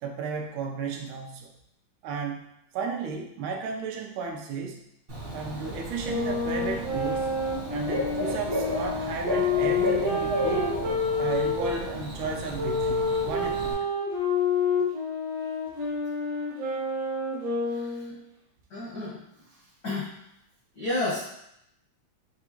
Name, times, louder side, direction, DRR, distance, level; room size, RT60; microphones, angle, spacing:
voice 1, 0.0-1.5 2.0-4.8 5.3-7.3 7.7-10.7 11.2-13.9, right 5 dB, 85° right, 2 dB, 2.0 m, -34 dB
Bird / Cricket, 5.1-13.7, equal, 40° right, 0.7 m, -33 dB
sound 1, 6.0-11.8 12.6-18.2, left 3 dB, 65° right, 1.6 m, -28 dB
voice 2, 17.7-18.1 18.7-19.2 19.8-20.1 20.7-21.2, left 2 dB, 75° left, -8 dB, 0.9 m, -31 dB
6.1 x 2.4 x 2.9 m, 0.78 s
omnidirectional pair, 3.3 m